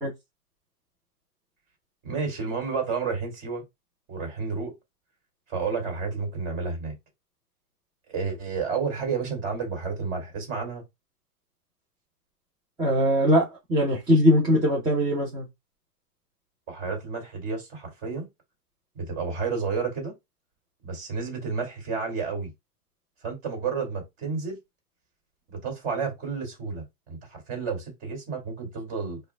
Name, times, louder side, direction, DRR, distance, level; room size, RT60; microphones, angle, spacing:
voice 1, 2.0-3.6 4.1-4.7 5.5-6.9 8.1-10.8 16.7-18.3 18.9-20.1 20.8-22.5 23.2-24.6 25.5-29.2, right 5 dB, 25° right, 2.5 m, -31 dB
voice 2, 12.8-15.4, equal, 10° right, 1.1 m, -21 dB
4.6 x 2.6 x 3.6 m
hypercardioid pair, 155°, 48 cm